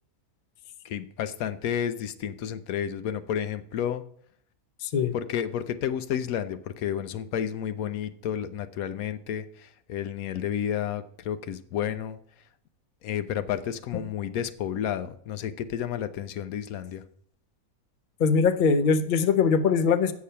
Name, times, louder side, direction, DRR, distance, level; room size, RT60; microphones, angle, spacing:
voice 1, 0.8-4.0 5.1-12.2 13.0-17.0, left 9 dB, 75° left, 12 dB, 1.1 m, -31 dB
voice 2, 4.8-5.1 18.2-20.1, left 5 dB, 50° left, 10 dB, 0.6 m, -22 dB
8.4 x 6.7 x 5.5 m, 0.63 s
omnidirectional pair, 1.5 m